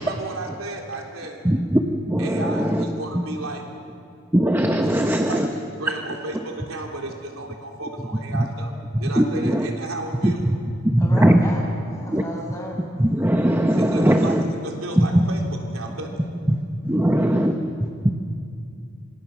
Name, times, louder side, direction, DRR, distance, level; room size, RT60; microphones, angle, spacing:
voice 1, 0.0-1.4 2.2-3.6 4.8-4.9 5.3-8.7 9.0-10.4 13.8-14.3 14.6-16.2, right 2 dB, 85° right, 1 dB, 3.6 m, -33 dB
voice 2, 1.4-2.8 3.1-3.2 4.3-5.5 8.3-8.5 8.9-9.7 10.2-10.6 10.8-11.4 12.1-12.2 13.0-14.4 15.0-15.3 16.2-18.1, right 1 dB, 10° right, 5 dB, 1.0 m, -20 dB
voice 3, 11.0-11.6 11.9-12.9, equal, 15° left, -2 dB, 6.6 m, -34 dB
26.5 x 26.0 x 6.2 m, 2.3 s
head